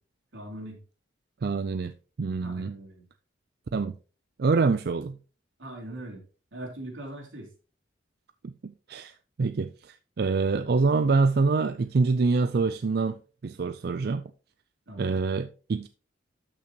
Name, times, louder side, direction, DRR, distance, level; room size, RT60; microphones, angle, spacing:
voice 1, 0.3-0.8 2.4-3.0 5.6-6.2 6.5-7.5 14.9-15.2, right 1 dB, 85° right, 3.5 m, -40 dB
voice 2, 1.4-1.9 2.2-2.7 3.7-3.9 4.4-5.2 8.4-9.1 9.4-13.2 13.4-14.2 15.0-15.9, right 4 dB, 55° right, 0.4 m, -25 dB
12.5 x 5.9 x 2.9 m
head